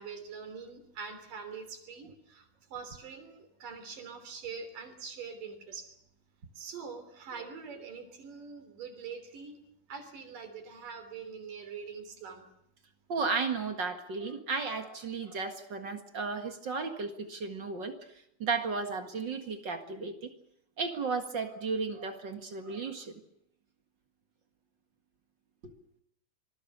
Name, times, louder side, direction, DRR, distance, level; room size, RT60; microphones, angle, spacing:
voice 1, 0.0-5.9 6.6-9.6 9.9-12.5, right 5 dB, 80° right, 8 dB, 4.9 m, -44 dB
voice 2, 13.1-18.0 18.4-20.3 20.8-23.1 25.6-25.7, right 4 dB, 40° right, 6 dB, 2.1 m, -34 dB
26.0 x 21.0 x 6.8 m, 0.75 s
omnidirectional pair, 3.7 m